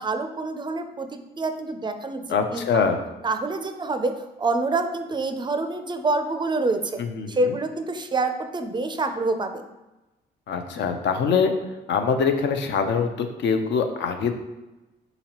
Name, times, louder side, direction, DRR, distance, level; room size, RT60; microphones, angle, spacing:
voice 1, 0.0-2.8 3.2-7.0 7.3-9.6, right 3 dB, 25° right, 8 dB, 0.4 m, -27 dB
voice 2, 2.3-3.0 7.0-7.6 10.5-11.5 11.9-14.3, left 5 dB, 65° left, 6 dB, 0.5 m, -24 dB
4.1 x 3.9 x 2.9 m, 1.0 s
cardioid pair, 90°, 20 cm